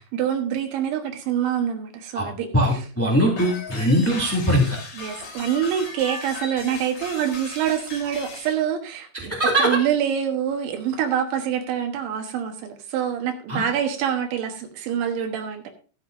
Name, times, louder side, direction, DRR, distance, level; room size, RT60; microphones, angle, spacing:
voice 1, 0.0-2.5 2.7-2.8 4.9-9.3 9.6-15.7, right 9 dB, 85° right, 4 dB, 3.6 m, -26 dB
voice 2, 2.1-4.8 9.1-9.7 13.5-13.6, equal, 10° left, -1 dB, 0.6 m, -21 dB
sound 1, 3.4-8.6, left 3 dB, 30° left, 2.9 m, -37 dB
13.0 x 11.5 x 2.6 m, 0.38 s
omnidirectional pair, 5.1 m